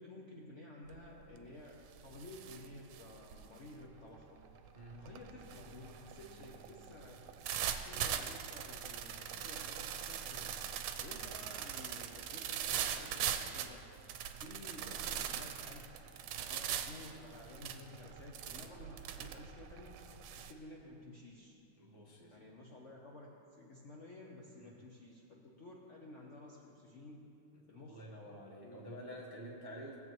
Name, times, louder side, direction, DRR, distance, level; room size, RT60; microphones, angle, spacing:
voice 1, 0.0-4.4 4.9-7.3 7.7-10.6 11.0-13.8 14.4-16.0 16.4-20.0 20.4-21.6 22.3-27.3 27.7-28.1 28.6-29.0, left 2 dB, 55° left, -2 dB, 0.8 m, -53 dB
sound 1, 0.9-1.2 1.6-20.5, right 9 dB, 85° right, 1.5 m, -41 dB
voice 2, 21.8-22.3 27.9-30.0, equal, 25° right, -2 dB, 0.5 m, -49 dB
18.0 x 7.9 x 3.1 m, 2.6 s
omnidirectional pair, 2.3 m